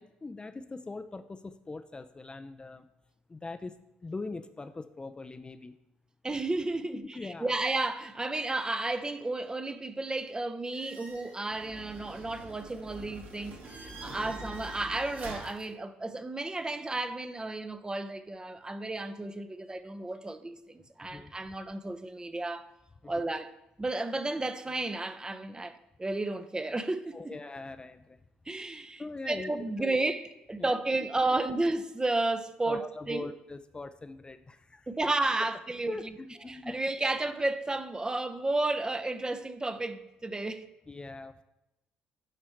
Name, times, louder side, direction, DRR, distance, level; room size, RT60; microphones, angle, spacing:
voice 1, 0.0-2.9 3.3-3.8 4.0-5.7 7.1-7.5 14.0-14.4 21.1-21.3 23.0-23.1 27.1-28.2 29.0-29.5 29.8-30.0 30.6-30.7 32.7-34.9 35.9-36.8 40.9-41.4, left 3 dB, 20° left, 0.5 m, -41 dB
voice 2, 6.2-22.7 23.1-27.4 28.5-33.3 34.9-36.1 36.5-40.7, right 2 dB, 15° right, 0.7 m, -32 dB
sound 1, 10.7-15.7, right 2 dB, 50° right, 1.9 m, -45 dB
11.5 x 4.3 x 4.6 m
figure-of-eight pair, 50°, 5 cm